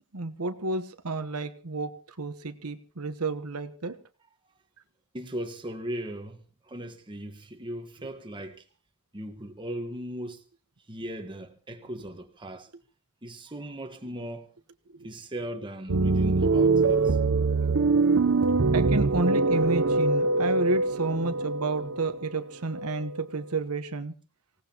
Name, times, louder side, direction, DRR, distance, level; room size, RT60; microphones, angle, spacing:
voice 1, 0.1-4.0 11.9-12.0 14.9-15.1 18.7-24.1, right 3 dB, 80° right, 1.2 m, -31 dB
voice 2, 5.1-8.6 9.1-10.4 10.9-12.7 13.2-14.5 15.0-17.2, right 1 dB, 20° right, 1.4 m, -38 dB
sound 1, 15.9-23.4, right 3 dB, 60° right, 0.8 m, -24 dB
24.5 x 17.5 x 3.0 m
head